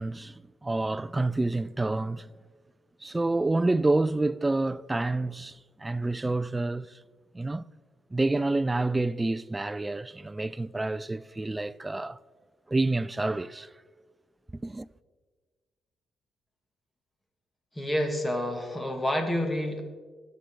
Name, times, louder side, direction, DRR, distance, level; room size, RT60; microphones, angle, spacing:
voice 1, 0.0-2.3 3.0-7.0 7.3-7.7 8.1-12.2 12.7-13.7 14.5-14.9, right 2 dB, 15° right, 0.3 m, -28 dB
voice 2, 17.8-19.8, left 1 dB, 15° left, 2.0 m, -28 dB
18.5 x 6.5 x 3.8 m
cardioid pair, 85°, 0 cm